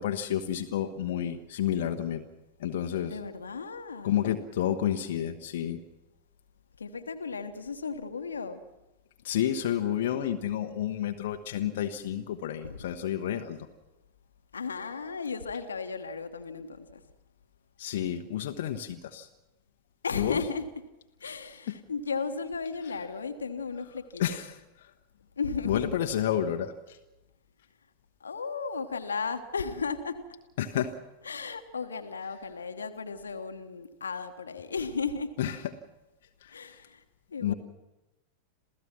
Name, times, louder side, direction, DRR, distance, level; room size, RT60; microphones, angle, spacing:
voice 1, 0.0-2.2 2.6-3.2 4.0-5.8 9.2-13.7 17.8-19.3 20.1-20.4 21.2-21.4 21.7-21.8 24.2-24.9 25.6-27.0 30.6-31.0 35.4-35.6 36.4-36.6 37.4-37.5, left 10 dB, 55° left, 5 dB, 1.0 m, -30 dB
voice 2, 3.0-4.1 6.8-8.6 12.6-12.8 14.5-17.0 20.0-20.7 21.2-24.4 25.4-26.0 28.2-30.3 31.2-35.3 36.5-37.0 37.3-37.5, left 5 dB, 75° left, 7 dB, 1.3 m, -35 dB
28.0 x 16.0 x 6.0 m, 1.0 s
figure-of-eight pair, 90°, 0 cm